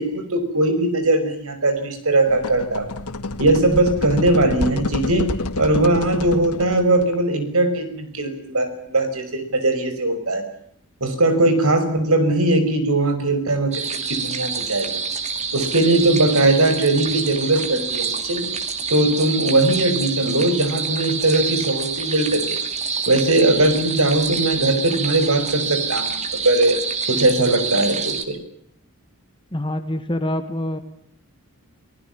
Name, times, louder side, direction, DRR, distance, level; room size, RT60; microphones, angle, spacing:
voice 1, 0.0-2.9 3.4-5.3 5.6-10.4 11.0-15.0 15.5-18.5 18.9-22.6 23.1-26.8 27.1-28.4, right 2 dB, 70° right, 10 dB, 5.7 m, -20 dB
sound 1, 2.3-7.1, left 2 dB, 90° left, 1.8 m, -28 dB
sound 2, 13.7-28.3, right 5 dB, 30° right, 2.7 m, -27 dB
voice 2, 29.5-30.8, left 1 dB, 20° left, 8 dB, 1.7 m, -25 dB
29.0 x 19.5 x 7.3 m, 0.67 s
head